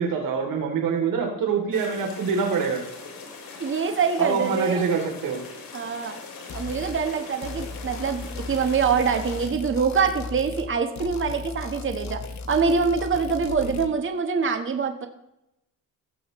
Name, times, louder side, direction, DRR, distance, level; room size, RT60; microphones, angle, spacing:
voice 1, 0.0-2.8 4.2-5.4, right 5 dB, 75° right, 1 dB, 3.1 m, -25 dB
sound 1, 1.7-9.5, left 4 dB, 80° left, 3.1 m, -41 dB
voice 2, 3.6-4.9 5.7-6.2 6.5-8.2 8.5-12.2 12.5-15.1, right 5 dB, 35° right, 6 dB, 1.2 m, -24 dB
sound 2, 6.5-7.0 7.4-10.7 11.0-13.9, left 3 dB, 55° left, 1.0 m, -36 dB
17.0 x 7.1 x 3.1 m, 0.88 s
cardioid pair, 110°, 34 cm